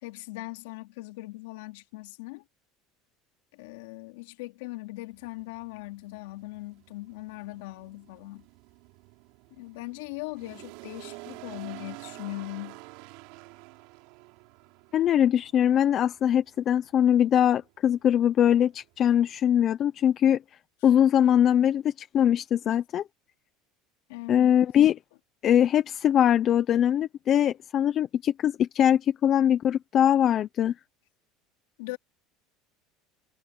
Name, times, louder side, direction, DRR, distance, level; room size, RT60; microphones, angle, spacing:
voice 1, 0.0-2.4 3.5-8.5 9.5-12.8 24.1-24.6 31.8-32.0, left 20 dB, 90° left, 2.9 m, -40 dB
sound 1, 5.1-19.6, right 24 dB, 70° right, 3.5 m, -49 dB
voice 2, 14.9-20.4 20.8-23.0 24.3-25.0 25.4-30.7, left 10 dB, 35° left, 0.7 m, -22 dB
cardioid pair, 150°, 0 cm